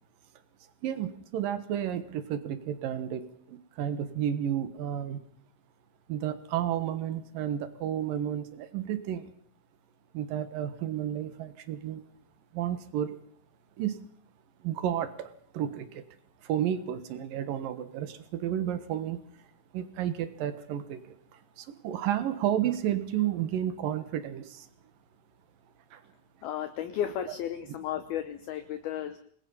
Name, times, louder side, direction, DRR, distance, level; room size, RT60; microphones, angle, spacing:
voice 1, 0.8-5.2 6.1-9.3 10.1-12.0 12.5-13.2 13.8-14.0 14.6-16.0 16.4-19.2 19.7-24.7 25.9-26.0, right 10 dB, 65° right, 11 dB, 2.3 m, -32 dB
voice 2, 26.4-29.2, left 10 dB, 75° left, 10 dB, 2.3 m, -34 dB
28.0 x 20.0 x 5.7 m, 0.62 s
omnidirectional pair, 5.7 m